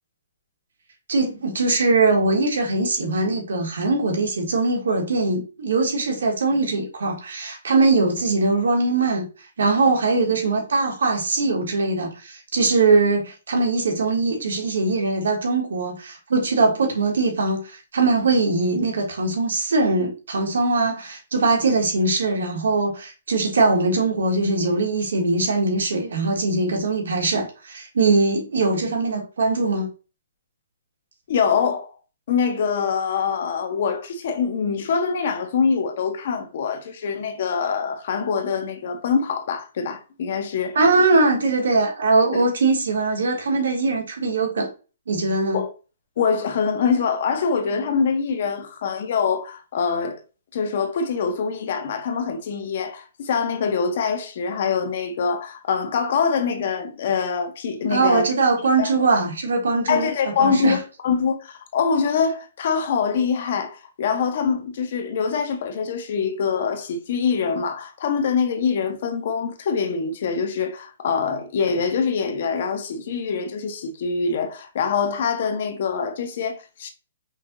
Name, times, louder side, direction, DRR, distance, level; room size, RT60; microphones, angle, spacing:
voice 1, 1.1-9.3 9.6-29.9 40.7-44.7 45.1-45.6 57.9-60.1 60.4-60.8, right 3 dB, 85° right, 1.5 m, -21 dB
voice 2, 31.3-31.9 32.3-40.8 42.3-42.4 45.5-45.7 46.2-50.2 50.5-58.3 58.8-58.9 59.9-76.9, left 6 dB, 40° left, 0.7 m, -24 dB
5.4 x 2.8 x 2.5 m
hypercardioid pair, 175°, 0 cm